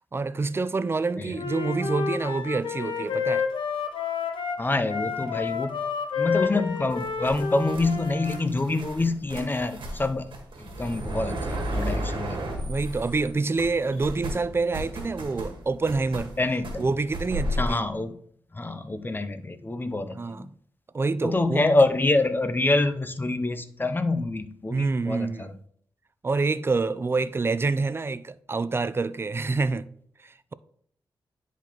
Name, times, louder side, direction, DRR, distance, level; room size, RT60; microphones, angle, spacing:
voice 1, 0.1-3.5 12.6-16.3 16.8-17.9 20.1-20.5 20.9-21.6 24.7-25.5 26.2-29.9 30.2-30.5, right 3 dB, 30° right, 0.4 m, -27 dB
Wind instrument woodwind instrument, 1.3-8.4, left 6 dB, 80° left, 0.9 m, -30 dB
voice 2, 4.6-5.8 6.2-10.3 10.6-12.4 16.4-16.8 17.6-18.2 18.5-20.5 21.2-25.5, left 2 dB, 25° left, 0.6 m, -26 dB
sound 1, 6.9-13.3 13.6-17.7, equal, 75° right, 1.5 m, -34 dB
10.0 x 4.0 x 3.0 m
cardioid pair, 65°, 9 cm